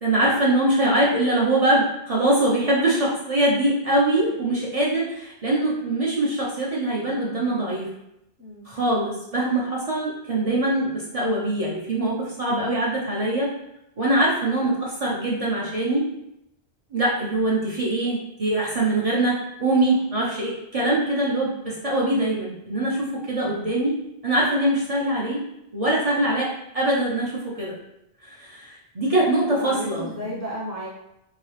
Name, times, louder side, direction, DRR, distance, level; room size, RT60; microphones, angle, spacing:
voice 1, 0.0-7.9 8.7-13.5 14.0-16.1 16.9-24.0 24.2-25.4 25.7-27.7 28.2-30.4, right 1 dB, 40° right, -5 dB, 0.6 m, -23 dB
voice 2, 8.4-8.7 20.8-21.0 29.6-30.9, equal, 20° left, -6 dB, 0.5 m, -33 dB
2.9 x 2.8 x 3.1 m, 0.84 s
omnidirectional pair, 1.0 m